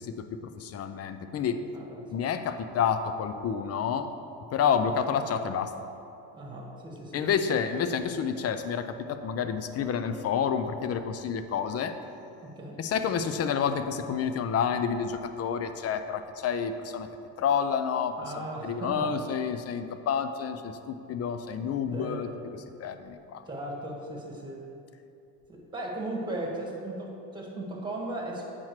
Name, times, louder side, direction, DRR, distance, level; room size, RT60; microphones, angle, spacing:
voice 1, 0.0-1.6 2.1-4.1 4.5-5.7 7.1-12.0 12.8-17.1 17.4-18.3 18.6-22.3 22.8-23.4, left 7 dB, 35° left, 9 dB, 0.5 m, -29 dB
voice 2, 6.3-7.2 12.4-12.8 18.2-19.1 21.9-22.3 23.4-24.6 25.5-28.4, right 1 dB, 10° right, -2 dB, 1.6 m, -37 dB
8.6 x 5.9 x 3.2 m, 2.7 s
supercardioid pair, 95°, 46 cm